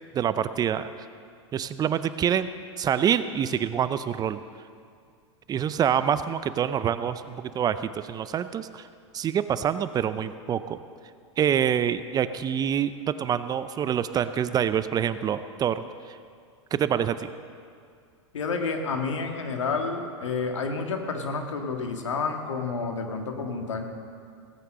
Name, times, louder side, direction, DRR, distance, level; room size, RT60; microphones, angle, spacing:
voice 1, 0.1-0.9 1.5-2.5 2.8-4.4 5.5-8.9 9.1-10.8 11.4-15.8 16.7-17.3, right 9 dB, 25° right, 13 dB, 0.5 m, -26 dB
voice 2, 18.3-23.8, left 4 dB, 80° left, 4 dB, 1.8 m, -30 dB
17.5 x 9.1 x 6.5 m, 2.2 s
hypercardioid pair, 100°, 16 cm